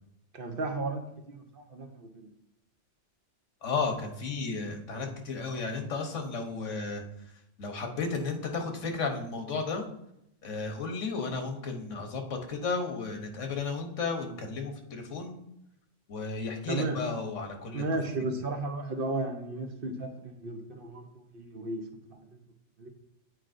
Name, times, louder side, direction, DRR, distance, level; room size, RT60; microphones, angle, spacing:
voice 1, 0.3-2.3 16.7-17.0 17.7-21.1 21.3-21.8 22.8-22.9, right 2 dB, 55° right, 4 dB, 0.8 m, -34 dB
voice 2, 3.6-7.0 7.6-9.8 10.4-15.3 16.1-17.8, left 4 dB, 85° left, 4 dB, 1.3 m, -33 dB
8.9 x 4.6 x 2.5 m, 0.80 s
omnidirectional pair, 1.2 m